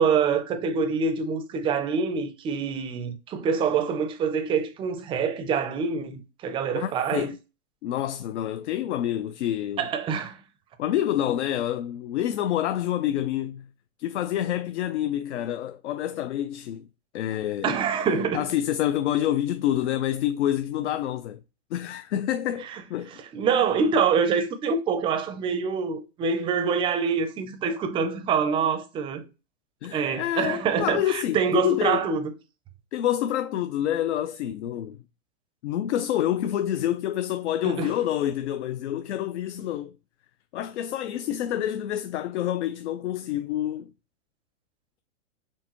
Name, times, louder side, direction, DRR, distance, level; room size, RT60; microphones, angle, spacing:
voice 1, 0.0-7.3 9.8-10.4 17.6-18.5 22.7-22.8 23.3-29.3 29.9-32.3 37.6-37.9, right 6 dB, 15° right, 0.5 m, -25 dB
voice 2, 6.7-7.4 7.8-9.9 10.8-13.6 14.0-16.9 17.1-17.7 18.3-21.4 21.7-23.2 29.8-32.1 32.9-35.0 35.6-39.9 40.5-43.9, left 12 dB, 70° left, 0.6 m, -27 dB
4.6 x 3.5 x 3.0 m
hypercardioid pair, 140°, 36 cm